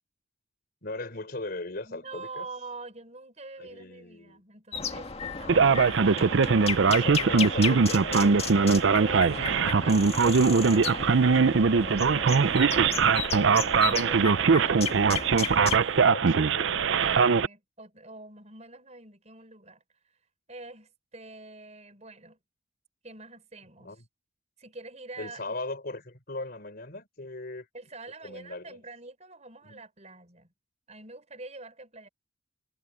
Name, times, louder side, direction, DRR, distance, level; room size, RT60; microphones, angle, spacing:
voice 1, 0.8-2.5 3.6-4.4 5.4-6.0 6.8-8.7 9.4-9.7 11.2-11.5 13.3-13.6 16.0-16.8 23.8-24.1 25.2-27.7 28.2-28.8 29.6-29.8, left 2 dB, 50° left, 3.7 m, -39 dB
voice 2, 1.8-5.8 8.9-13.5 14.1-15.1 15.7-16.5 16.9-20.1 20.5-22.4 23.0-23.9 24.6-25.5 27.7-30.5 30.9-32.1, right 3 dB, 35° right, 5.6 m, -45 dB
sound 1, 4.7-15.8, left 5 dB, 30° left, 1.9 m, -34 dB
Male speech man speaking, 5.5-17.5, right 5 dB, 65° right, 0.5 m, -22 dB
head